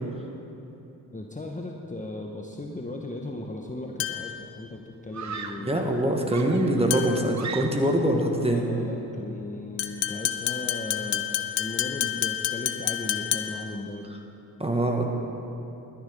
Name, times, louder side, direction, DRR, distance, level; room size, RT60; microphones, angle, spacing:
voice 1, 1.1-5.8 8.5-11.3 11.6-14.1, left 2 dB, 15° left, 1 dB, 1.1 m, -37 dB
Screaming, 3.6-4.0 5.1-5.8 6.3-8.1, right 6 dB, 40° right, 1.0 m, -38 dB
sound 1, 4.0-4.4 6.9-7.3 9.8-13.7, left 12 dB, 75° left, 0.8 m, -29 dB
voice 2, 5.6-8.7 14.6-15.0, right 1 dB, 15° right, 2 dB, 1.8 m, -24 dB
12.0 x 10.0 x 5.4 m, 2.9 s
supercardioid pair, 50°, 44 cm